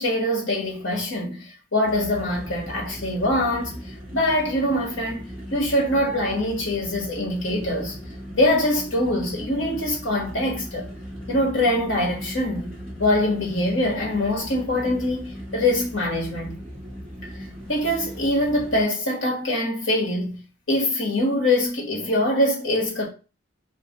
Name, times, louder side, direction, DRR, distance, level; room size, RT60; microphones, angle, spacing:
voice 1, 0.0-5.2 5.5-7.9 8.3-10.9 11.3-12.7 13.0-16.6 17.7-20.4 20.7-23.1, left 1 dB, 65° left, 1.3 m, -23 dB
sound 1, 1.8-18.8, equal, 5° left, 1.3 m, -38 dB
2.7 x 2.4 x 3.8 m
head